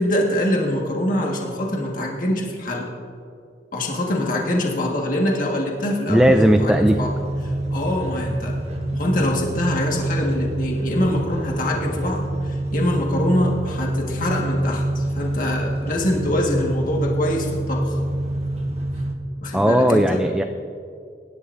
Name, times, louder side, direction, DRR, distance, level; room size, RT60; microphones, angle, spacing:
voice 1, 0.0-2.9 3.7-7.1 7.4-8.6 8.9-18.0 19.4-20.2, left 1 dB, 50° left, -1 dB, 1.6 m, -24 dB
voice 2, 6.1-7.0 19.5-20.4, equal, 5° right, 5 dB, 0.4 m, -16 dB
sound 1, 6.1-19.1, right 1 dB, 35° right, 1.2 m, -26 dB
24.0 x 11.5 x 2.6 m, 2.3 s
head